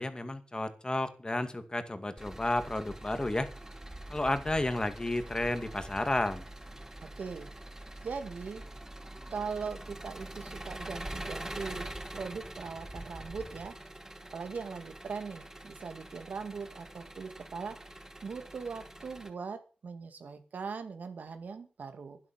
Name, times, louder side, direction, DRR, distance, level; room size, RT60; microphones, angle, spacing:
voice 1, 0.0-3.5 4.1-6.4, left 2 dB, 30° left, 10 dB, 2.3 m, -32 dB
Engine, 2.2-19.3, right 1 dB, 15° right, 4.9 m, -45 dB
voice 2, 7.0-7.5 8.0-8.6 9.3-11.8 12.1-13.8 14.3-17.8 18.2-22.2, right 5 dB, 85° right, 8 dB, 2.3 m, -40 dB
12.0 x 10.5 x 6.1 m, 0.37 s
cardioid pair, 50°, 3 cm